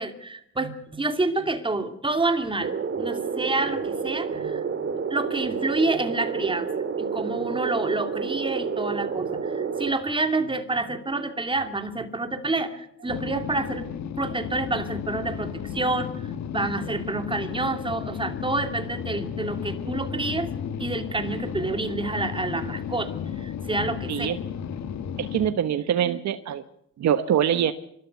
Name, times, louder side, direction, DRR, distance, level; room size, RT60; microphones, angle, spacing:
voice 1, 0.0-6.7 7.0-20.5 20.8-24.3, right 2 dB, 15° right, 7 dB, 2.5 m, -28 dB
sound 1, 2.6-9.9, right 5 dB, 45° right, 2.3 m, -29 dB
sound 2, 13.1-25.5, left 8 dB, 65° left, 1.7 m, -33 dB
voice 2, 25.2-26.6 27.0-27.7, right 9 dB, 65° right, 10 dB, 1.1 m, -24 dB
27.0 x 13.0 x 8.2 m, 0.75 s
cardioid pair, 90°, 30 cm